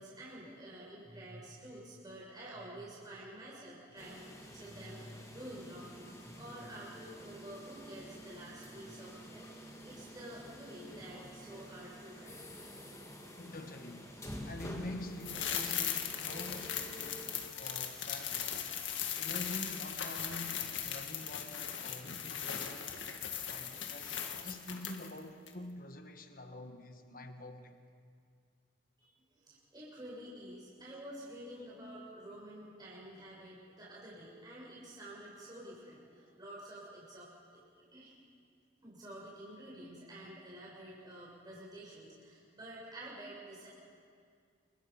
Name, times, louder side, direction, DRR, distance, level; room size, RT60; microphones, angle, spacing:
voice 1, 0.0-12.4 29.0-37.6 37.9-38.1 38.8-43.7, right 1 dB, 20° right, 6.3 m, -49 dB
sound 1, 4.0-17.5, equal, 15° left, 2.0 m, -49 dB
voice 2, 13.4-18.5 19.1-22.9 23.5-27.7, left 1 dB, 45° left, 1.3 m, -46 dB
sound 2, 15.2-25.2 25.5-25.6, left 8 dB, 75° left, 1.8 m, -38 dB
27.5 x 23.5 x 5.7 m
head